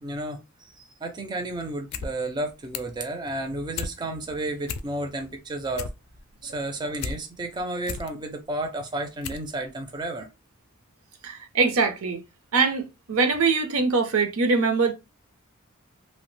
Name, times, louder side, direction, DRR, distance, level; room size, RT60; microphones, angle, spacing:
voice 1, 0.0-5.9 6.4-10.3, right 2 dB, 20° right, 0.4 m, -32 dB
sound 1, 1.7-2.1 2.4-3.0 3.4-3.9 4.3-4.4 4.6-5.2 5.5-7.2 7.6-8.1 8.7-8.8 9.2-9.5 9.8-9.9, left 5 dB, 80° left, 0.4 m, -34 dB
voice 2, 11.2-12.2 12.5-14.9, right 4 dB, 75° right, 0.6 m, -23 dB
2.7 x 2.0 x 3.1 m
head